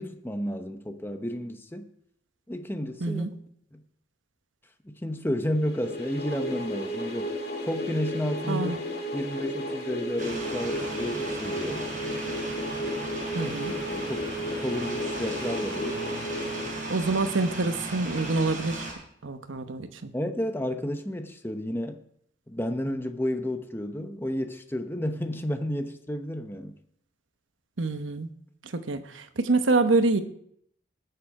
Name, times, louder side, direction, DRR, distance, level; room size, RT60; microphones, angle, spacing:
voice 1, 0.0-1.9 2.5-3.2 3.7-3.8 4.8-7.3 7.6-8.7 9.1-11.9 13.4-13.6 13.9-14.2 14.6-16.0 20.1-22.0 22.5-26.8, left 1 dB, 10° left, 0.9 m, -31 dB
sound 1, 5.6-17.4, equal, 55° left, 2.2 m, -33 dB
voice 2, 8.5-8.8 13.3-13.7 16.9-18.8 19.2-20.1 27.8-28.3 28.6-30.2, right 3 dB, 85° right, 1.0 m, -26 dB
sound 2, 10.2-18.9, right 2 dB, 45° right, 4.5 m, -36 dB
19.0 x 6.8 x 4.8 m
head